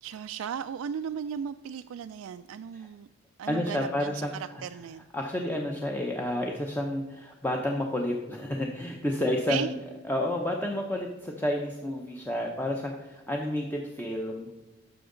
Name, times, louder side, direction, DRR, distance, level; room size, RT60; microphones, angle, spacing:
voice 1, 0.0-3.1 3.4-4.3 4.6-5.1 5.4-5.6 9.5-9.7, right 7 dB, 85° right, 8 dB, 0.3 m, -36 dB
voice 2, 3.5-4.6 5.1-9.8 10.0-14.5, left 1 dB, 10° left, 1 dB, 0.6 m, -30 dB
10.5 x 6.9 x 3.8 m, 1.1 s
head